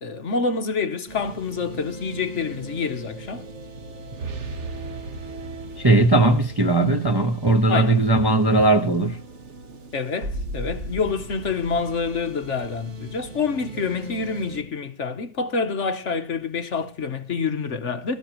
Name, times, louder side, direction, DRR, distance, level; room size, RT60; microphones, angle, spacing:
voice 1, 0.0-3.4 7.7-8.0 9.9-18.2, left 5 dB, 55° left, 1.1 m, -27 dB
sound 1, 1.1-14.6, right 2 dB, 50° right, 1.4 m, -37 dB
voice 2, 5.8-9.2, right 2 dB, 20° right, 0.7 m, -18 dB
18.0 x 13.5 x 3.0 m
omnidirectional pair, 1.7 m